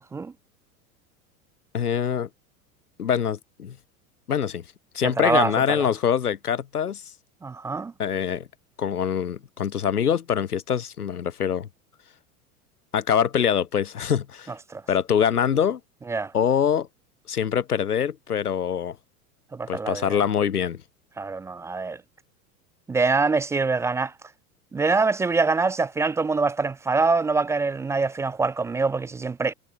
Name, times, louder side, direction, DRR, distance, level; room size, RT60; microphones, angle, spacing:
voice 1, 1.7-2.3 3.0-3.8 4.3-4.6 4.9-7.0 8.0-8.5 8.8-11.7 12.9-14.5 14.9-15.8 16.3-16.9 17.3-19.0 19.7-20.8, left 8 dB, 85° left, 0.8 m, -24 dB
voice 2, 5.0-5.9 7.4-7.9 14.7-14.8 16.1-16.3 19.5-20.2 21.2-22.0 22.9-24.1 24.7-29.5, right 4 dB, 5° right, 0.4 m, -24 dB
figure-of-eight pair, 85°, 44 cm